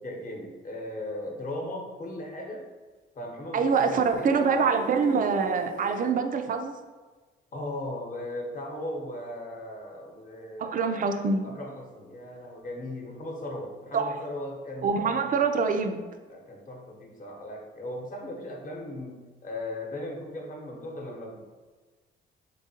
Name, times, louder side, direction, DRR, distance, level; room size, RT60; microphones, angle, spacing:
voice 1, 0.0-2.6 3.1-4.7 7.5-11.1 11.4-15.2 16.3-21.4, left 1 dB, 40° left, 0 dB, 1.0 m, -38 dB
voice 2, 3.5-6.7 10.6-11.4 13.9-14.2 14.8-16.1, right 5 dB, 45° right, 6 dB, 0.4 m, -25 dB
sound 1, 3.7-6.1, left 3 dB, 70° left, 0.5 m, -42 dB
3.7 x 3.6 x 2.7 m, 1.3 s
cardioid pair, 90°, 20 cm